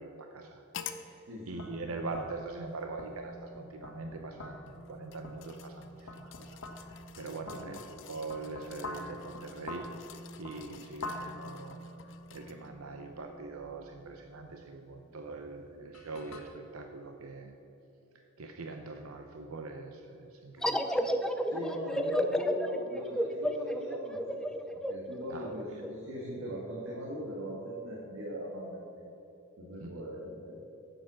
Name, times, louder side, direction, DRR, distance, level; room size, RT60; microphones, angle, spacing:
voice 1, 0.0-10.1 10.4-17.6 18.4-20.9 25.3-25.5 29.8-29.9, right 3 dB, 90° right, 4 dB, 0.7 m, -43 dB
sound 1, 0.7-1.1 2.1-2.2 4.6-12.7 13.2-13.3, left 8 dB, 60° left, 0.7 m, -49 dB
voice 2, 1.3-1.9 7.5-7.7 21.5-24.2 24.7-29.1 29.6-30.7, equal, 70° right, -3 dB, 1.8 m, -40 dB
sound 2, 1.5-16.4, left 2 dB, 90° left, 1.5 m, -47 dB
sound 3, 20.6-25.9, equal, 5° left, 0.4 m, -32 dB
10.0 x 7.8 x 6.3 m, 3.0 s
head